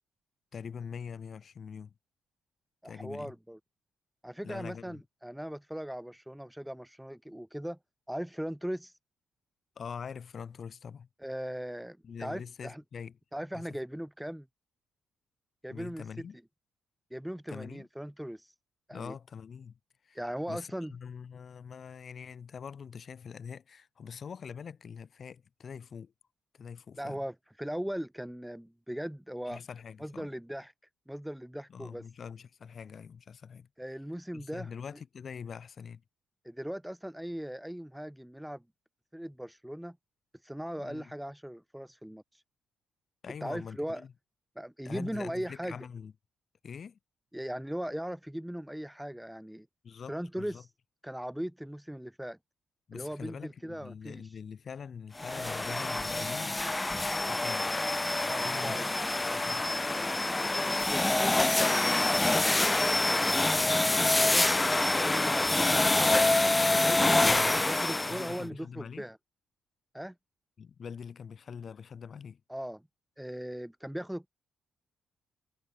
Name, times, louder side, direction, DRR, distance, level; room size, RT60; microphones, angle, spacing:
voice 1, 0.5-1.9 2.8-3.3 4.4-5.0 9.7-11.1 12.0-13.2 13.5-13.8 15.7-16.4 17.5-17.9 18.9-19.8 20.0-20.2 20.5-26.1 26.5-27.2 29.5-30.3 31.7-33.7 34.3-36.0 40.8-41.1 43.2-44.1 44.8-46.1 46.6-47.0 49.8-50.6 52.9-56.6 57.2-57.7 58.2-59.7 67.2-67.6 68.0-69.1 70.6-72.4, left 6 dB, 50° left, 5.0 m, -44 dB
voice 2, 2.8-3.6 4.2-7.8 8.1-8.9 11.2-12.8 13.3-14.5 15.6-16.3 17.1-18.5 18.9-19.1 20.1-20.9 27.0-29.6 30.0-30.7 31.1-32.0 33.8-34.7 36.4-38.6 39.1-40.0 40.4-42.4 43.4-44.0 44.6-45.8 47.3-49.7 50.1-50.7 51.0-52.4 52.9-54.3 58.2-58.9 60.7-64.5 65.0-66.2 66.8-69.2 69.9-70.1 72.5-72.8 73.2-74.3, equal, 5° right, 3.6 m, -39 dB
sound 1, 55.2-68.4, left 2 dB, 15° left, 0.8 m, -26 dB
cardioid pair, 90°, 0 cm